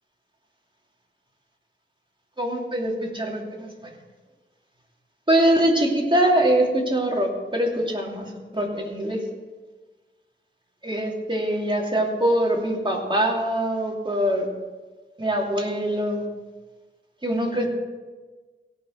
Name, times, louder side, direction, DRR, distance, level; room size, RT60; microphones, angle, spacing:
voice 1, 2.4-3.9 5.3-9.2 10.8-14.5 15.2-16.2 17.2-17.7, right 1 dB, 25° right, -1 dB, 2.7 m, -23 dB
17.0 x 6.2 x 6.2 m, 1.3 s
wide cardioid pair, 45°, 20 cm